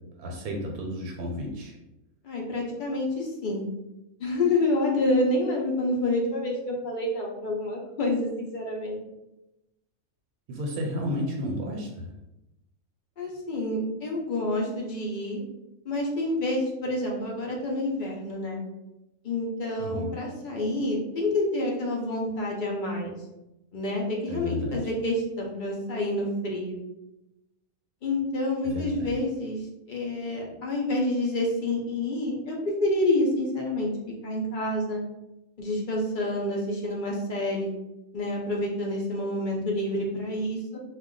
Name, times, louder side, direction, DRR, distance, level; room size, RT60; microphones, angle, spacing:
voice 1, 0.2-1.8 10.5-12.1 19.8-20.1 24.3-24.8 28.6-29.1, left 1 dB, 85° right, 0 dB, 1.0 m, -32 dB
voice 2, 2.2-3.7 4.2-9.0 13.2-15.4 15.9-18.6 19.2-23.1 23.7-26.8 28.0-29.6 29.9-33.9 34.2-35.0 35.6-37.7 38.1-40.8, left 1 dB, 60° left, -1 dB, 0.5 m, -28 dB
2.4 x 2.2 x 3.7 m, 0.94 s
omnidirectional pair, 1.5 m